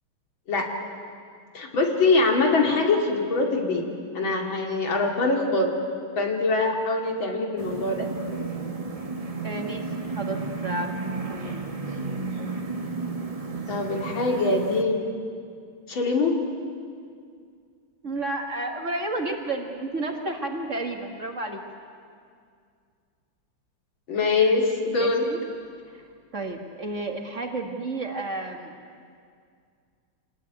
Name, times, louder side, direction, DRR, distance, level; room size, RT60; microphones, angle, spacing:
voice 1, 1.5-3.9 4.1-5.7 6.2-8.0 13.7-14.9 15.9-16.4 24.1-25.3, left 3 dB, 70° left, 1 dB, 3.4 m, -23 dB
sound 1, 7.6-14.8, right 3 dB, 20° right, 1.3 m, -32 dB
voice 2, 9.4-9.9 10.2-11.0 11.3-11.7 18.0-21.6 25.0-25.4 25.9-26.1 26.3-28.7, right 2 dB, 40° right, 3 dB, 1.8 m, -31 dB
26.0 x 19.5 x 9.5 m, 2.2 s
omnidirectional pair, 2.3 m